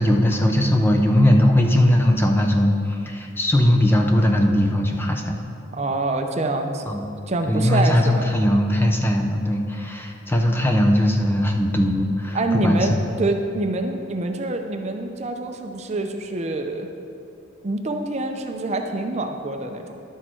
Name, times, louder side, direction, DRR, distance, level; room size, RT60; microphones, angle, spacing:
voice 1, 0.0-5.4 6.9-7.0 7.5-12.9, left 1 dB, 10° left, 2 dB, 0.6 m, -19 dB
voice 2, 5.7-6.9 7.3-8.3 12.3-16.9 17.6-20.0, right 2 dB, 35° right, 5 dB, 0.5 m, -26 dB
11.0 x 6.4 x 4.5 m, 2.6 s
head